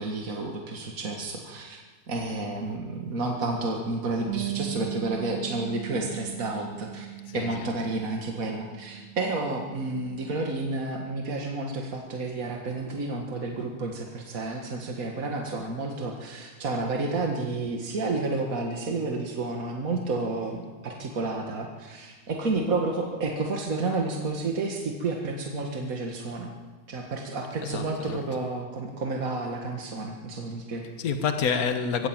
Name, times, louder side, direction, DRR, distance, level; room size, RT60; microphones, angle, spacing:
voice 1, 0.0-1.8 2.1-7.1 7.3-26.5 26.9-30.8, right 3 dB, 35° right, 1 dB, 1.5 m, -31 dB
Bass guitar, 4.3-10.5, right 16 dB, 65° right, 3.7 m, -38 dB
voice 2, 7.3-7.7 27.6-28.2 31.0-32.1, left 6 dB, 70° left, 7 dB, 0.8 m, -28 dB
21.5 x 16.0 x 8.9 m, 1.4 s
omnidirectional pair, 3.6 m